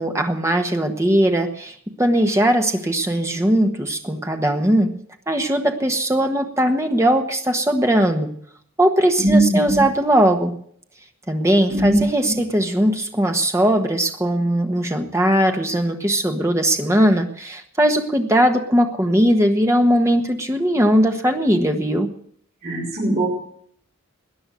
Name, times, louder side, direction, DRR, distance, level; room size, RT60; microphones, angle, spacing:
voice 1, 0.0-4.9 5.3-8.3 8.8-10.6 11.3-22.1, right 1 dB, 15° right, 4 dB, 1.4 m, -19 dB
voice 2, 9.2-9.8 11.7-12.3 22.6-23.3, right 1 dB, 40° right, -7 dB, 5.4 m, -19 dB
19.5 x 10.0 x 6.3 m, 0.63 s
head